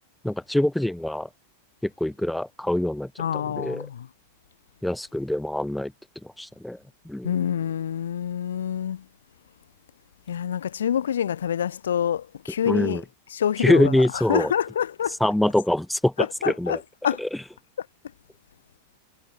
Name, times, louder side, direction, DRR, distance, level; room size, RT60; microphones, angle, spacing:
voice 1, 0.2-1.3 1.8-3.9 4.8-5.9 6.4-6.8 7.0-7.4 12.7-13.0 13.6-14.5 15.2-16.8 17.2-17.3, left 1 dB, 5° left, 1.0 m, -24 dB
voice 2, 3.2-4.1 7.2-9.0 10.3-13.0 13.3-13.9 14.3-15.2 16.4-16.8 17.0-17.2, left 9 dB, 65° left, 0.3 m, -26 dB
figure-of-eight pair, 90°, 0 cm